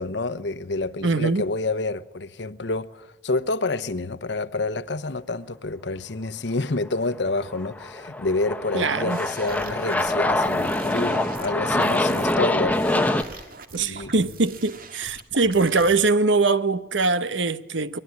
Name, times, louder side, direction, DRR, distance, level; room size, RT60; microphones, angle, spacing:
voice 1, 0.0-13.5 13.8-14.1, left 3 dB, 65° left, 1.0 m, -28 dB
voice 2, 1.0-1.4 8.7-9.2 13.7-18.0, right 3 dB, 75° right, 1.1 m, -22 dB
Aircraft, 7.5-13.2, left 1 dB, 10° left, 1.0 m, -24 dB
sound 1, 9.1-16.0, right 4 dB, 50° right, 1.8 m, -43 dB
23.5 x 20.0 x 9.5 m
head